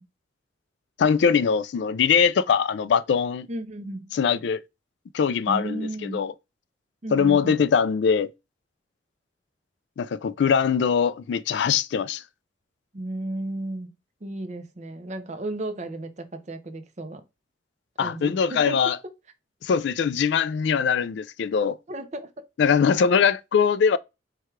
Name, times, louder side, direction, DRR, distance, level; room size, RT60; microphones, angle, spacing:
voice 1, 1.0-3.5 4.1-4.6 5.1-6.3 7.1-8.3 10.0-12.2 18.0-19.0 19.6-21.8 22.6-24.0, left 6 dB, 70° left, 0.3 m, -22 dB
voice 2, 3.5-4.2 5.5-6.3 7.0-7.6 12.9-13.9 14.2-17.2 18.0-19.0 21.9-22.3, right 1 dB, 40° right, 0.6 m, -34 dB
4.6 x 2.3 x 4.6 m
head